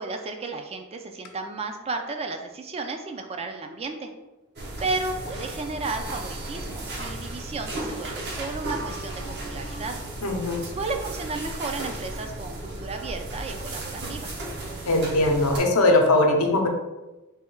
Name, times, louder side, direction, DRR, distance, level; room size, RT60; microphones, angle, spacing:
voice 1, 0.0-4.1 4.8-10.0 10.6-14.3, right 3 dB, 30° right, 5 dB, 0.3 m, -33 dB
sound 1, 4.6-15.6, right 2 dB, 50° right, 0.7 m, -35 dB
voice 2, 10.2-10.6 14.9-16.7, left 2 dB, 85° left, 3 dB, 0.7 m, -20 dB
3.4 x 2.3 x 4.3 m, 1.0 s
head